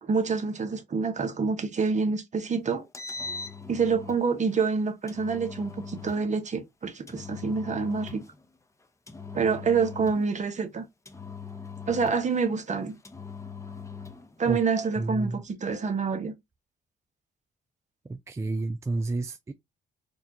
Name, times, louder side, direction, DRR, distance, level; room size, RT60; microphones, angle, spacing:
voice 1, 0.0-2.8 3.7-8.2 9.3-10.9 11.9-13.0 14.4-16.3, right 5 dB, 35° right, 0.9 m, -27 dB
Engine, 2.8-4.3 5.1-6.3 7.1-8.3 9.1-10.4 11.1-12.4 13.0-14.3, left 4 dB, 15° left, 0.7 m, -40 dB
voice 2, 15.0-15.4 18.0-19.5, right 2 dB, 15° right, 0.3 m, -30 dB
4.3 x 2.4 x 2.8 m
cardioid pair, 90°, 20 cm